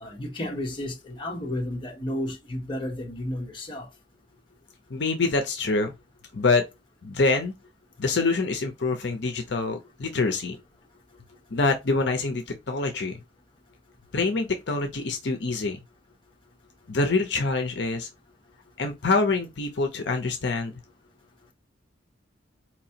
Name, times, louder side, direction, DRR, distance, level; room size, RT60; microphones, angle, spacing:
voice 1, 0.0-3.9, left 1 dB, 25° left, 1.0 m, -32 dB
voice 2, 4.9-5.9 6.3-6.6 7.0-7.5 8.0-10.6 11.5-13.1 14.1-15.8 16.9-18.1 18.8-20.7, left 3 dB, 60° left, 0.7 m, -25 dB
4.4 x 3.0 x 2.8 m
head